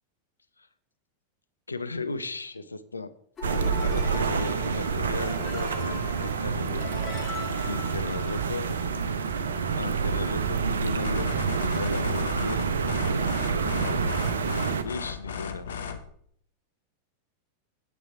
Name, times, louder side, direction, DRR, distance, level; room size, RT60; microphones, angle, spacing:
voice 1, 1.7-3.1 3.4-7.3 7.6-8.9 9.7-14.2 14.8-15.7, left 3 dB, 80° left, 11 dB, 0.6 m, -36 dB
sound 1, 3.4-8.9, left 3 dB, 20° left, 2.2 m, -40 dB
sound 2, 3.4-14.8, right 6 dB, 65° right, 0.8 m, -28 dB
sound 3, 11.0-16.1, left 6 dB, 65° left, 1.0 m, -36 dB
9.0 x 8.3 x 4.7 m, 0.64 s
figure-of-eight pair, 90°, 0 cm